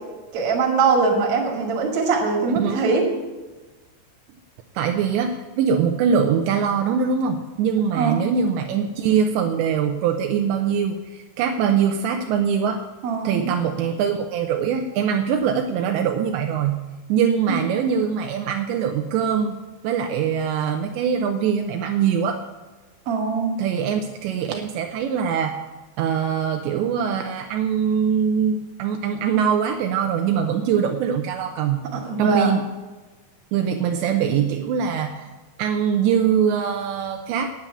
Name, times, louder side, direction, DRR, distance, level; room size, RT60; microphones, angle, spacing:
voice 1, 0.3-3.0 7.9-8.3 13.0-13.5 17.5-17.6 23.1-23.6 31.9-32.5, right 4 dB, 45° right, 0 dB, 2.1 m, -22 dB
voice 2, 4.8-12.8 13.2-16.8 17.1-19.6 19.8-22.4 23.6-25.6 26.0-31.9 32.2-32.6 33.5-35.3 35.6-37.5, right 7 dB, 85° right, 4 dB, 2.7 m, -22 dB
9.8 x 9.1 x 7.1 m, 1.2 s
omnidirectional pair, 5.5 m